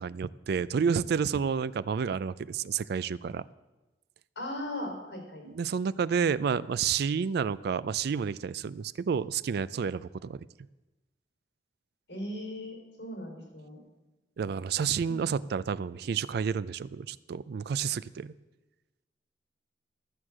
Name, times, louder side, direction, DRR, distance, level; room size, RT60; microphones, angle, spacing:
voice 1, 0.0-3.4 5.5-10.5 14.4-18.3, right 6 dB, 65° right, 17 dB, 0.3 m, -30 dB
voice 2, 4.4-5.5 12.1-13.8 15.1-15.2, left 1 dB, 80° left, 1 dB, 4.4 m, -38 dB
13.0 x 6.4 x 7.4 m, 1.1 s
head